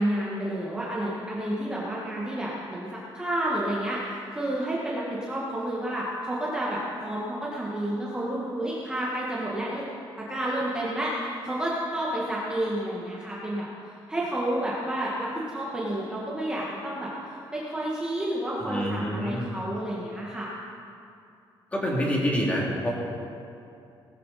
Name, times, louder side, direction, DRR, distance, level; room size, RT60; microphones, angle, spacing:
voice 1, 0.0-9.8 10.2-11.1 11.4-13.7 14.1-17.1 17.5-20.5, right 1 dB, 10° right, -6 dB, 1.6 m, -30 dB
voice 2, 18.6-19.4 21.7-22.9, equal, 15° left, -4 dB, 2.8 m, -27 dB
19.5 x 13.5 x 4.2 m, 2.6 s
cardioid pair, 170°, 9 cm